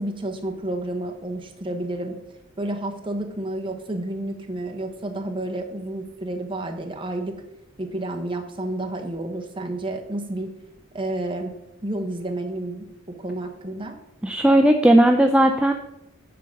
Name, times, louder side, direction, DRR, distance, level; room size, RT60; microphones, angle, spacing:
voice 1, 0.0-2.2 2.6-7.4 7.8-10.5 10.9-11.5 11.8-12.8 13.2-14.0, right 1 dB, 25° right, 3 dB, 1.0 m, -30 dB
voice 2, 14.2-15.7, right 1 dB, 5° right, 4 dB, 0.3 m, -16 dB
9.3 x 3.8 x 6.4 m, 0.88 s
head